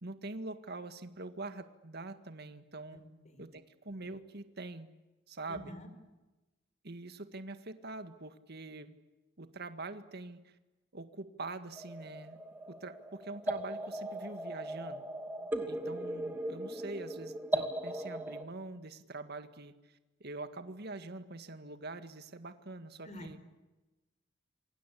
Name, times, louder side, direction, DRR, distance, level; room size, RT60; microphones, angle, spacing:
voice 1, 0.0-3.0 3.4-4.9 5.3-5.7 6.8-8.9 9.4-10.6 10.9-12.4 12.8-15.0 15.7-23.4, right 2 dB, 55° right, 10 dB, 1.9 m, -44 dB
voice 2, 2.9-3.5 5.5-5.9 23.0-23.4, equal, 35° left, 10 dB, 4.6 m, -48 dB
sound 1, 11.8-18.4, right 1 dB, 10° right, 2.6 m, -38 dB
28.0 x 24.5 x 8.5 m, 1.1 s
head